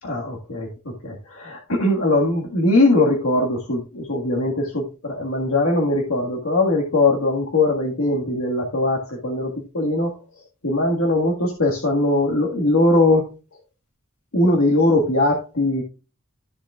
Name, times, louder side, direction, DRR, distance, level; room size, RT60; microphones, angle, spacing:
voice 1, 0.0-10.1 10.6-13.3 14.3-15.8, left 2 dB, 85° left, 0 dB, 1.7 m, -20 dB
13.5 x 6.9 x 2.4 m, 0.32 s
head